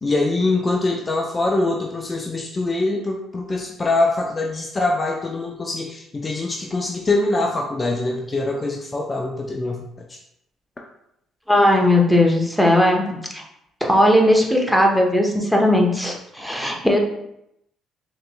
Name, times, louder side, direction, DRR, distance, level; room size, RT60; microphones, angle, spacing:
voice 1, 0.0-9.8 10.1-10.2, left 2 dB, 30° left, 1 dB, 0.5 m, -23 dB
voice 2, 11.5-13.4 13.8-17.0, left 1 dB, ahead, 0 dB, 0.9 m, -17 dB
4.9 x 3.0 x 2.2 m, 0.81 s
supercardioid pair, 65°, 0 cm